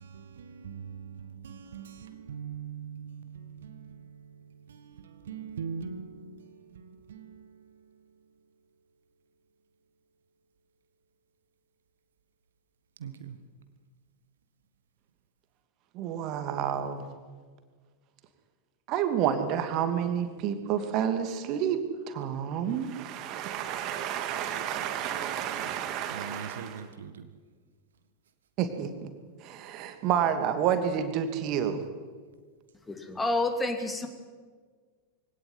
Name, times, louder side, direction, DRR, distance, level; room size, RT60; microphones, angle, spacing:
voice 1, 0.0-7.9 13.0-13.4 26.1-27.3, right 6 dB, 65° right, 1.7 m, -42 dB
voice 2, 15.9-17.1 18.9-21.8 22.1-26.8 28.6-29.1 29.4-31.8, right 9 dB, 40° right, 2.6 m, -30 dB
voice 3, 32.9-34.1, left 2 dB, 10° left, 2.8 m, -29 dB
23.0 x 17.5 x 9.5 m
figure-of-eight pair, 90°, 0 cm